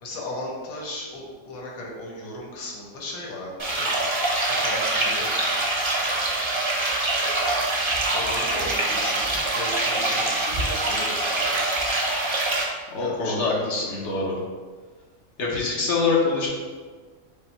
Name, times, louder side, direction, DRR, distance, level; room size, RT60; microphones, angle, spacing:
voice 1, 0.0-4.0 4.4-5.3 8.1-11.8 13.0-13.7, left 1 dB, 90° left, -2 dB, 1.4 m, -36 dB
sound 1, 3.6-12.6, right 2 dB, 35° right, 0.5 m, -24 dB
voice 2, 12.9-14.4 15.4-16.5, left 4 dB, 60° left, -3 dB, 1.2 m, -24 dB
5.3 x 2.2 x 4.3 m, 1.5 s
omnidirectional pair, 1.5 m